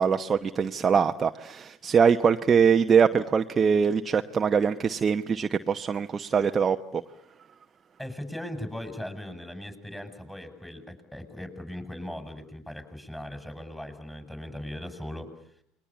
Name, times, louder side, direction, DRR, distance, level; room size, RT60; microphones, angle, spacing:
voice 1, 0.0-6.8, right 6 dB, 30° right, 7 dB, 1.0 m, -23 dB
voice 2, 8.0-15.3, left 1 dB, 5° left, 8 dB, 6.2 m, -39 dB
29.0 x 22.0 x 8.5 m, 0.68 s
hypercardioid pair, 75°, 0 cm